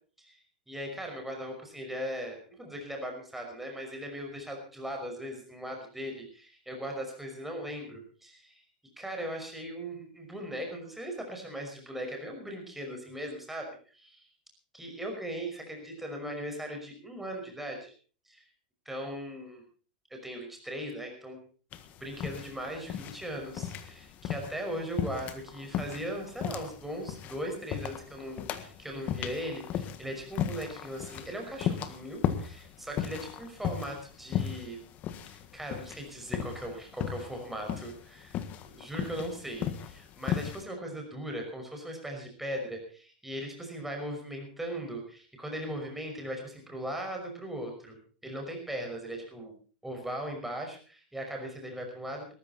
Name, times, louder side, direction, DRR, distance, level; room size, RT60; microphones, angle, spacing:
voice 1, 0.7-8.6 9.0-14.3 14.8-17.9 18.3-18.4 18.9-19.6 20.1-21.4 22.0-34.8 35.3-38.4 38.6-49.5 49.8-52.3, equal, 5° right, 2 dB, 5.6 m, -39 dB
sound 1, 21.7-40.6, left 10 dB, 35° left, 1.6 m, -36 dB
19.5 x 13.5 x 4.3 m, 0.40 s
supercardioid pair, 130°, 4 cm